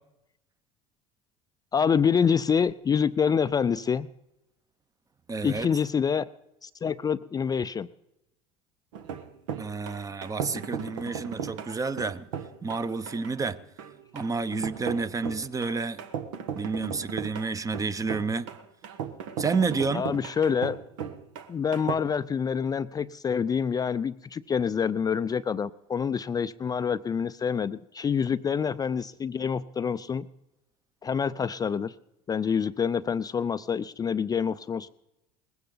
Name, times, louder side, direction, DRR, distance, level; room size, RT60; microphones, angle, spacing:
voice 1, 1.7-4.1 5.4-6.3 6.6-7.9 19.9-20.8 21.5-30.3 31.0-31.9 32.3-34.9, left 6 dB, 25° left, 0.4 m, -26 dB
voice 2, 5.3-5.7 9.6-12.3 12.6-13.6 14.1-16.0 16.5-18.5 19.4-20.1, right 4 dB, 20° right, 0.8 m, -30 dB
sound 1, 8.9-21.9, right 7 dB, 80° right, 1.3 m, -37 dB
20.0 x 15.5 x 4.0 m
hypercardioid pair, 85°, 16 cm